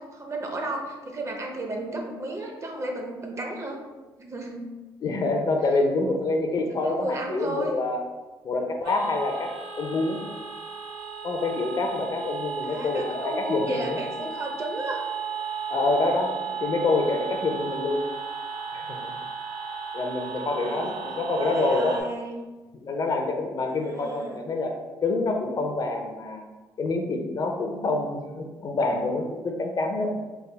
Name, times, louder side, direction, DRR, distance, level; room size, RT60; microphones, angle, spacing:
voice 1, 0.0-3.8 4.2-4.6 6.7-7.7 12.6-15.0 20.2-21.0 21.3-22.3 23.7-24.4, right 2 dB, 30° right, 2 dB, 0.5 m, -33 dB
voice 2, 5.0-8.0 8.4-10.2 11.2-14.0 15.7-18.1 18.7-19.1 19.9-22.0 22.7-26.4 26.8-30.1, left 2 dB, 40° left, 3 dB, 0.5 m, -27 dB
sound 1, 8.8-22.0, right 5 dB, 80° right, 0.5 m, -35 dB
3.4 x 2.1 x 3.2 m, 1.2 s
cardioid pair, 105°, 9 cm